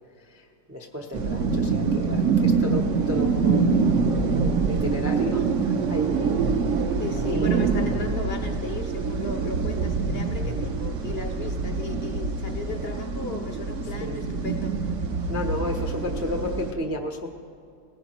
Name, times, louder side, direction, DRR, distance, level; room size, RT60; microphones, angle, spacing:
voice 1, 0.3-5.4 5.9-6.4 7.3-7.7 14.0-14.2 15.3-17.3, left 1 dB, 15° right, 2 dB, 0.5 m, -32 dB
sound 1, 1.1-16.7, right 5 dB, 60° right, 1.0 m, -25 dB
voice 2, 7.0-15.0, left 4 dB, 50° left, 5 dB, 0.9 m, -36 dB
19.0 x 18.0 x 3.0 m, 2.3 s
omnidirectional pair, 1.6 m